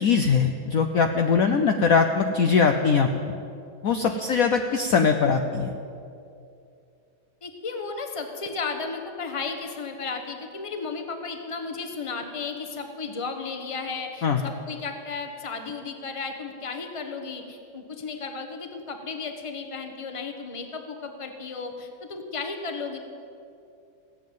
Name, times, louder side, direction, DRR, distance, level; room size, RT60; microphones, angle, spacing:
voice 1, 0.0-3.3 3.8-5.7 14.2-14.4, left 5 dB, 75° left, 5 dB, 0.8 m, -21 dB
voice 2, 7.4-23.0, left 4 dB, 25° left, 5 dB, 0.8 m, -34 dB
17.0 x 7.4 x 9.3 m, 2.5 s
omnidirectional pair, 2.3 m